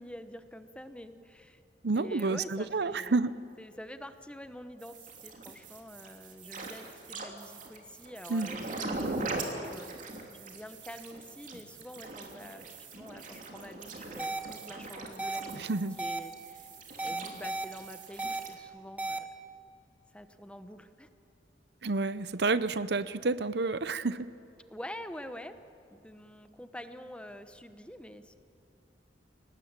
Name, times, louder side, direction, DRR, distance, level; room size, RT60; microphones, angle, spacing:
voice 1, 0.0-1.6 2.0-3.2 3.6-12.7 13.0-16.7 17.0-19.3 20.1-21.1 24.7-25.6 25.9-28.4, equal, 5° left, 9 dB, 1.1 m, -46 dB
voice 2, 1.8-3.3 8.3-8.5 15.6-16.0 21.8-24.3, right 3 dB, 65° right, 14 dB, 0.8 m, -29 dB
sound 1, 4.8-18.5, right 3 dB, 45° right, 3.1 m, -41 dB
sound 2, 14.2-14.4 15.2-15.4 16.0-16.2 17.0-17.6 18.2-18.4 19.0-19.2, right 2 dB, 10° right, 1.5 m, -33 dB
29.5 x 19.0 x 8.9 m, 2.6 s
head